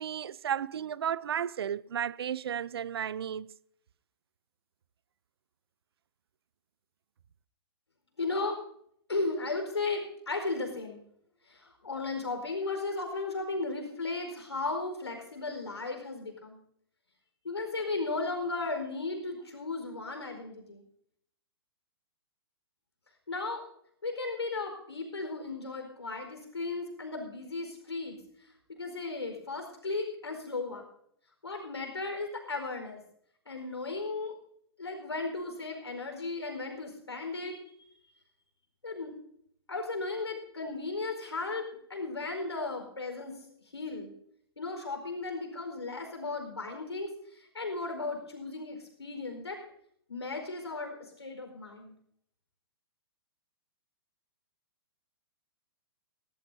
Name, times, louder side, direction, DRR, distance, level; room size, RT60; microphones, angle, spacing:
voice 1, 0.0-3.5, right 9 dB, 70° right, 0.5 m, -33 dB
voice 2, 8.2-8.6 9.1-11.0 11.4-16.6 17.4-20.8 23.3-23.6 24.0-30.8 31.4-33.0 33.5-34.4 34.8-37.6 38.8-39.1 39.7-43.5 43.7-44.1 44.6-49.7 50.1-51.9, left 3 dB, 90° left, 4.6 m, -35 dB
18.5 x 17.0 x 2.7 m
hypercardioid pair, 120°, 13 cm